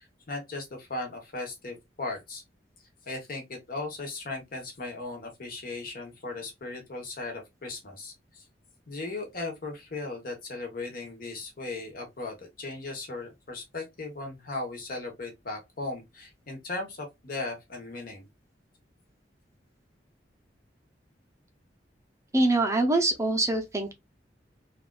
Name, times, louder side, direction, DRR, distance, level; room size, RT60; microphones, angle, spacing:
voice 1, 0.3-2.4 3.1-8.1 8.9-18.3, left 2 dB, 55° left, 1.1 m, -37 dB
voice 2, 22.3-23.9, right 2 dB, 15° right, 0.6 m, -24 dB
3.4 x 2.4 x 2.3 m
head